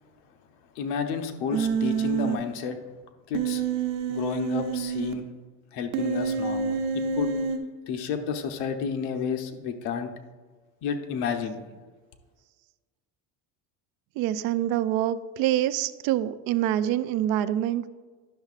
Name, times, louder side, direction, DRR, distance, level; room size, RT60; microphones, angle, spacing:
voice 1, 0.8-2.8 3.3-3.6 4.1-5.3 5.7-7.3 7.9-10.1 10.8-11.6, left 6 dB, 75° left, 6 dB, 0.9 m, -31 dB
Human voice, 1.5-2.4 3.3-5.1 5.9-7.6, right 6 dB, 90° right, 0.9 m, -27 dB
voice 2, 14.2-17.9, right 12 dB, 60° right, 13 dB, 0.5 m, -26 dB
10.0 x 6.2 x 2.5 m, 1.4 s
cardioid pair, 135°, 41 cm